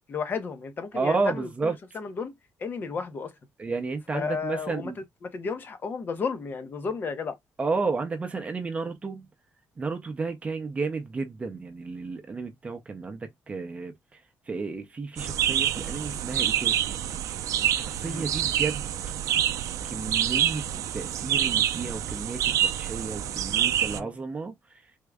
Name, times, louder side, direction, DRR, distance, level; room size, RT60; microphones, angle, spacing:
voice 1, 0.1-2.3 2.6-3.3 4.1-4.9 5.2-7.4 18.0-18.3 23.9-24.1, left 5 dB, 35° left, 0.6 m, -33 dB
voice 2, 0.9-1.7 3.6-5.0 7.6-9.3 9.8-13.9 14.5-17.0 17.6-19.1 19.8-20.7 20.9-24.5, right 4 dB, 25° right, 0.6 m, -32 dB
sound 1, 15.2-24.0, right 11 dB, 70° right, 0.4 m, -27 dB
3.5 x 2.1 x 3.4 m
cardioid pair, 160°, 6 cm